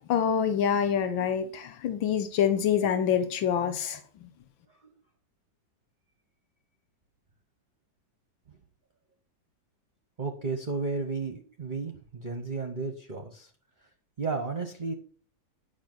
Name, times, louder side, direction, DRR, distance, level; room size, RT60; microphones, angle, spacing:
voice 1, 0.1-4.0, left 8 dB, 90° left, 9 dB, 1.8 m, -26 dB
voice 2, 10.2-13.5 14.2-14.9, right 4 dB, 30° right, 6 dB, 1.0 m, -33 dB
9.4 x 6.6 x 6.1 m, 0.41 s
omnidirectional pair, 2.1 m